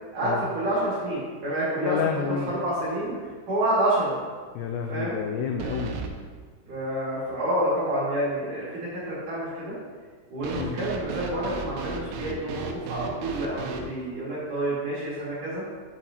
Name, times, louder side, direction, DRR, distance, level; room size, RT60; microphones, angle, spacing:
voice 1, 0.1-3.2 3.5-4.1 4.9-5.1 6.7-9.8 10.3-15.6, right 1 dB, 50° right, -8 dB, 3.2 m, -28 dB
voice 2, 1.8-2.5 4.6-6.0 10.6-10.8, left 7 dB, 90° left, 3 dB, 2.5 m, -29 dB
sound 1, 2.8-3.0 3.3-3.4 5.6-6.1 10.4-13.9, right 4 dB, 85° right, 3.2 m, -34 dB
9.8 x 7.2 x 2.9 m, 1.5 s
omnidirectional pair, 5.6 m